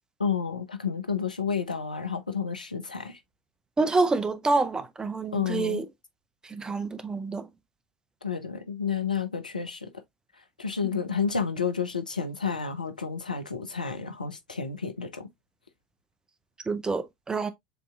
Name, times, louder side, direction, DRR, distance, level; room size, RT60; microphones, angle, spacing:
voice 1, 0.2-3.2 5.3-5.8 8.2-9.9 10.6-15.3, left 6 dB, 90° left, 0.6 m, -30 dB
voice 2, 3.8-5.8 6.5-7.4 16.7-17.5, right 3 dB, 15° right, 0.6 m, -27 dB
6.8 x 2.7 x 2.2 m
figure-of-eight pair, 80°, 4 cm